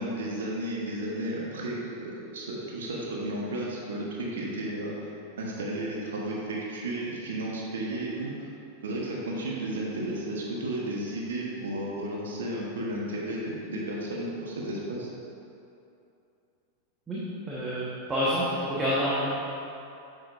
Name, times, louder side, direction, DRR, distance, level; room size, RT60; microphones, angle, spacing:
voice 1, 0.0-4.9 5.4-8.3 8.8-15.1, right 1 dB, 65° right, -3 dB, 1.2 m, -33 dB
voice 2, 17.5-19.3, equal, 15° right, -8 dB, 1.4 m, -28 dB
9.0 x 6.7 x 2.6 m, 2.7 s
figure-of-eight pair, 90°, 0 cm